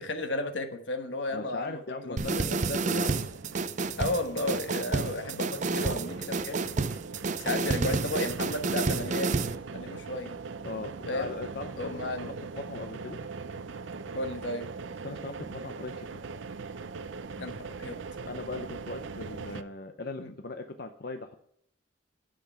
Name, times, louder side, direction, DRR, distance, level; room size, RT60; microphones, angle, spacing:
voice 1, 0.0-2.2 4.0-6.7 7.4-9.4 9.7-10.4 11.1-11.3 11.8-12.3 14.1-14.7 17.4-18.0 20.2-20.3, left 2 dB, 75° left, 7 dB, 1.3 m, -33 dB
voice 2, 1.3-3.1 10.6-13.2 15.0-16.1 18.3-21.3, left 3 dB, 55° left, 7 dB, 0.7 m, -39 dB
sound 1, 2.2-9.6, right 3 dB, 40° right, 0.5 m, -30 dB
sound 2, 2.6-19.6, right 4 dB, 90° right, 0.6 m, -41 dB
10.5 x 7.8 x 4.5 m, 0.69 s
head